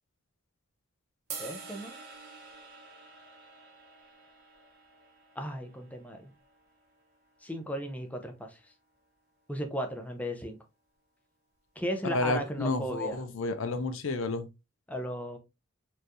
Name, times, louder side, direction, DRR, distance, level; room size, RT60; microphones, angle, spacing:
sound 1, 1.3-7.5, right 4 dB, 50° right, 1.4 m, -48 dB
voice 1, 1.4-1.9 5.4-6.3 7.4-8.6 9.5-10.6 11.8-13.2 14.9-15.4, equal, 5° left, 0.6 m, -35 dB
voice 2, 12.0-14.5, left 3 dB, 65° left, 0.5 m, -31 dB
4.5 x 3.2 x 2.5 m
head